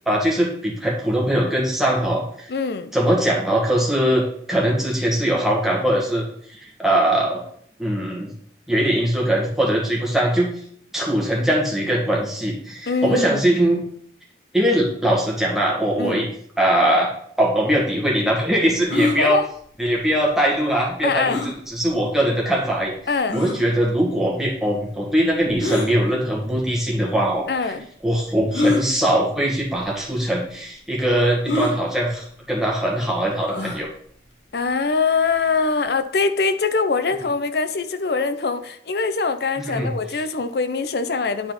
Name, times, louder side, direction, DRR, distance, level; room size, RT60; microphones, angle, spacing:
voice 1, 0.1-2.5 2.9-7.4 7.8-8.3 8.7-10.5 10.9-13.8 14.5-16.3 16.6-17.1 17.4-19.4 19.8-21.4 21.7-22.9 23.3-27.7 28.0-33.9 39.6-39.9, right 1 dB, ahead, 1.9 m, -21 dB
voice 2, 2.5-2.9 12.9-13.5 16.0-16.3 19.2-19.5 21.0-21.4 23.1-23.4 27.5-27.9 34.5-41.5, left 4 dB, 60° left, 0.6 m, -23 dB
sound 1, 18.9-19.2 21.3-21.6 22.3-22.4 23.3-23.6 25.6-25.9 27.0-27.1 28.5-28.8 29.8-29.9 30.2-30.3 31.5-31.8 33.5-33.8, left 2 dB, 90° left, 1.8 m, -23 dB
9.7 x 4.3 x 4.1 m
head